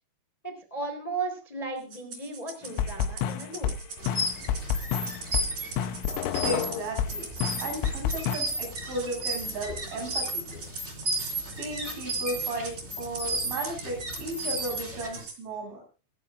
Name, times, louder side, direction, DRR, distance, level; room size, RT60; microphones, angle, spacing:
voice 1, 0.4-3.8, right 3 dB, 10° left, 5 dB, 2.7 m, -35 dB
Rattle (instrument), 1.9-15.4, right 4 dB, 45° right, 4.7 m, -43 dB
sound 1, 2.8-7.1 7.4-8.4, left 9 dB, 90° left, 3.6 m, -28 dB
sound 2, 4.0-15.2, right 1 dB, 15° right, 3.2 m, -34 dB
voice 2, 6.4-7.3 7.6-10.6 11.6-15.8, right 2 dB, 70° right, 1 dB, 10.0 m, -35 dB
26.0 x 12.0 x 2.6 m, 0.32 s
omnidirectional pair, 5.7 m